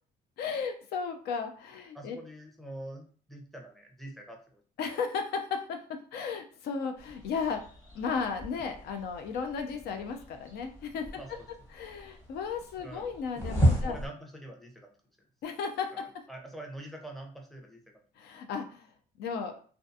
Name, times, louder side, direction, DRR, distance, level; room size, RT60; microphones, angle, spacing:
voice 1, 0.4-2.2 4.8-7.6 7.9-11.4 11.7-14.0 15.4-16.0 18.2-18.9 19.2-19.6, left 5 dB, 70° left, 5 dB, 0.4 m, -35 dB
voice 2, 1.9-4.6 11.2-11.5 12.8-13.1 13.7-14.9 15.9-17.8, right 1 dB, ahead, 1 dB, 0.6 m, -45 dB
sound 1, 7.0-14.1, right 1 dB, 15° left, 1.0 m, -34 dB
2.4 x 2.2 x 2.6 m, 0.43 s
cardioid pair, 110°, 17 cm